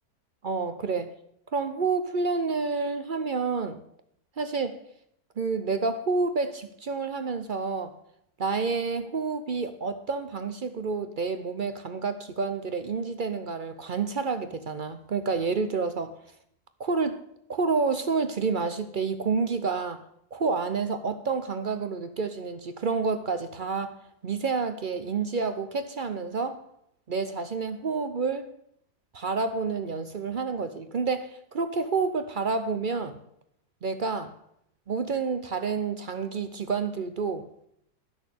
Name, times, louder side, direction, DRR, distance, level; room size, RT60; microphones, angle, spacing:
voice 1, 0.4-1.1 1.5-3.8 4.4-4.8 5.4-7.9 8.4-16.2 16.8-17.2 17.5-20.0 20.3-24.0 24.2-26.6 27.1-28.5 29.1-33.2 33.8-34.3 34.9-37.4, right 4 dB, 55° right, 0.5 m, -29 dB
11.0 x 6.4 x 8.3 m
omnidirectional pair, 1.7 m